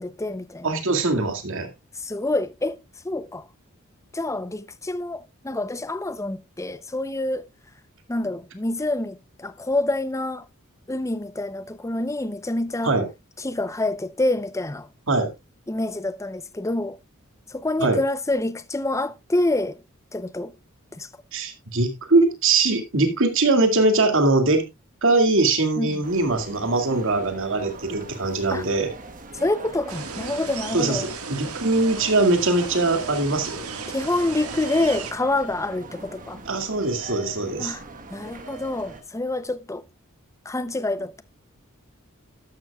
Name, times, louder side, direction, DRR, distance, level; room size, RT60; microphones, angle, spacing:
voice 1, 0.0-0.7 2.0-2.8 3.0-3.5 4.1-7.5 8.1-10.5 10.9-12.9 13.4-14.9 15.7-17.0 17.5-19.8 20.1-20.5 20.9-21.1 25.8-26.0 28.5-28.6 29.4-31.1 33.9-36.4 37.6-37.8 38.1-39.8 40.4-41.2, left 2 dB, 15° left, 0.6 m, -27 dB
voice 2, 0.6-1.7 12.8-13.0 15.1-15.3 17.8-18.0 21.3-24.6 25.0-28.9 30.7-33.6 36.5-37.8, right 2 dB, 65° right, 2.3 m, -21 dB
sound 1, 26.0-39.0, right 3 dB, 40° right, 1.3 m, -41 dB
sound 2, 29.9-35.1, right 5 dB, 90° right, 1.8 m, -35 dB
12.5 x 11.5 x 2.3 m
head